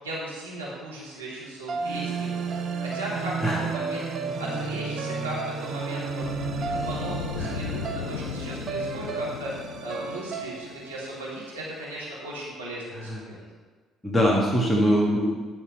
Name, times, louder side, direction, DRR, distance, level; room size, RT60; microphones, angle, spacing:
voice 1, 0.0-2.5 2.8-6.3 6.6-9.5 9.8-13.4, right 1 dB, 85° right, -7 dB, 1.7 m, -37 dB
sound 1, 1.7-12.0, right 5 dB, 45° right, 0.7 m, -33 dB
sound 2, 6.2-11.1, left 6 dB, 75° left, 0.6 m, -36 dB
voice 2, 7.4-7.8 12.9-13.2 14.0-15.3, equal, 15° left, -3 dB, 1.5 m, -23 dB
10.5 x 4.3 x 5.3 m, 1.4 s
figure-of-eight pair, 50°, 0 cm